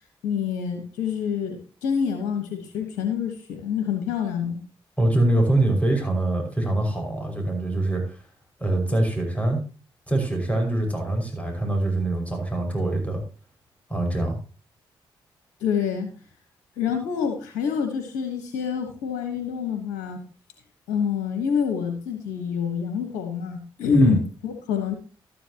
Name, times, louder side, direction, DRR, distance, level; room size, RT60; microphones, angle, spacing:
voice 1, 0.2-4.6 15.6-16.1 16.8-20.2 20.9-24.9, left 7 dB, 90° left, 5 dB, 1.2 m, -27 dB
voice 2, 5.0-8.2 8.6-9.6 10.1-13.2 13.9-14.4 23.9-24.2, right 2 dB, 10° left, 2 dB, 5.6 m, -23 dB
12.5 x 10.0 x 2.9 m, 0.36 s
supercardioid pair, 45°, 11 cm